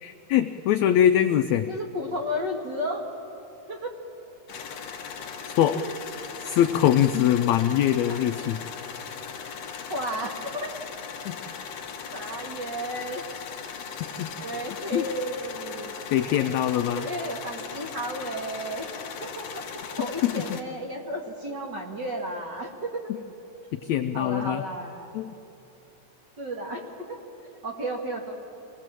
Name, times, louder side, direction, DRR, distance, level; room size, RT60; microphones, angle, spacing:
voice 1, 0.0-1.7 5.6-5.8 6.4-8.6 11.2-11.4 14.2-14.3 14.9-15.0 16.1-17.1 20.2-20.3 23.8-24.6 25.1-25.3, left 10 dB, 85° left, 9 dB, 1.6 m, -22 dB
voice 2, 1.7-3.1 3.7-3.9 5.6-6.0 8.1-8.4 9.9-10.8 11.6-11.7 12.1-13.2 13.8-14.0 14.4-15.9 16.9-18.9 19.2-23.1 24.1-25.1 26.4-28.3, equal, 40° right, 1 dB, 1.9 m, -33 dB
sound 1, 4.5-20.6, left 6 dB, 60° left, 2.2 m, -38 dB
26.0 x 19.5 x 7.6 m, 2.9 s
omnidirectional pair, 3.9 m